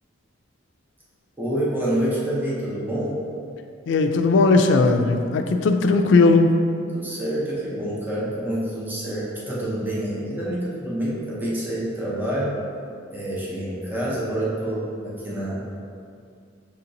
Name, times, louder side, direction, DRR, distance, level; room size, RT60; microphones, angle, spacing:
voice 1, 1.4-3.2 6.9-12.6 13.1-15.8, right 1 dB, 10° right, -7 dB, 0.7 m, -27 dB
voice 2, 3.9-6.6, left 3 dB, 70° left, 6 dB, 0.3 m, -17 dB
6.4 x 2.8 x 2.6 m, 2.4 s
head